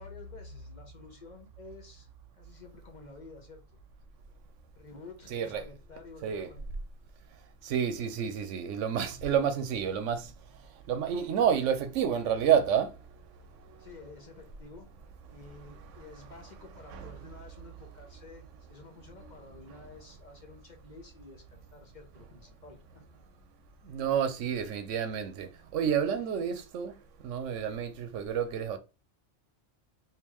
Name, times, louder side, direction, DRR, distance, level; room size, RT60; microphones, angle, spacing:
voice 1, 0.0-2.1 2.4-3.6 4.8-6.6 13.8-14.9 15.3-22.8 23.9-24.0, left 3 dB, 45° left, 0.7 m, -51 dB
voice 2, 5.3-5.6 6.2-6.5 7.6-10.3 10.9-12.9 16.9-17.2 23.9-26.9 27.2-28.8, right 8 dB, 85° right, 1.0 m, -29 dB
3.5 x 2.7 x 3.0 m
omnidirectional pair, 1.2 m